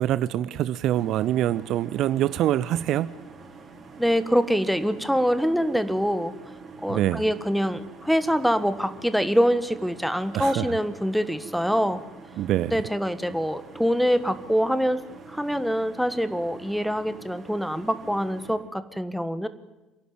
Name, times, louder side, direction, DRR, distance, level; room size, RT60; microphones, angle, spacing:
voice 1, 0.0-3.1 6.9-7.2 10.3-10.7 12.4-12.7, right 12 dB, 55° right, 17 dB, 0.6 m, -24 dB
sound 1, 0.9-18.6, right 3 dB, 30° right, 4.5 m, -46 dB
voice 2, 4.0-6.3 6.8-12.0 12.7-19.5, equal, ahead, 12 dB, 1.4 m, -25 dB
27.0 x 11.5 x 9.3 m, 1.1 s
hypercardioid pair, 65°, 0 cm